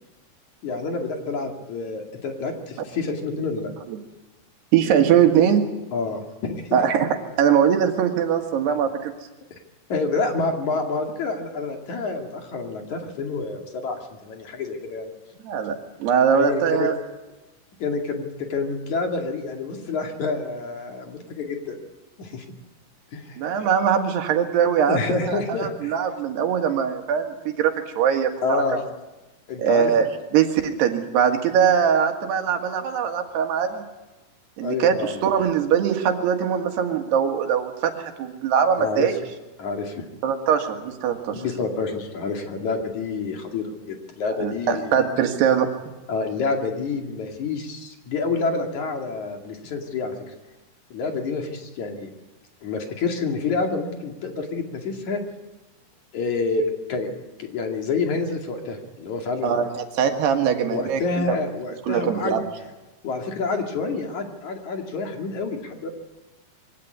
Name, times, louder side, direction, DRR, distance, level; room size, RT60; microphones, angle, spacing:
voice 1, 0.6-3.7 5.9-6.8 9.9-15.1 16.3-16.9 17.8-21.8 22.2-22.4 23.1-23.4 24.9-25.9 28.4-28.9 29.5-29.9 34.6-35.2 38.8-39.1 39.6-40.0 41.3-45.0 46.1-50.1 50.9-52.1 52.6-55.2 56.1-56.6 56.9-57.1 57.4-59.6 60.7-62.4 63.0-65.9, left 4 dB, 50° left, 3 dB, 3.4 m, -28 dB
voice 2, 4.7-5.7 6.7-7.1 7.4-9.1 15.5-17.0 23.4-28.6 29.6-30.1 30.3-33.8 34.6-39.2 40.2-41.4 44.4-45.7 59.4-61.0 61.9-62.4, right 8 dB, 85° right, 5 dB, 3.9 m, -21 dB
23.5 x 17.0 x 9.7 m, 1.1 s
omnidirectional pair, 4.7 m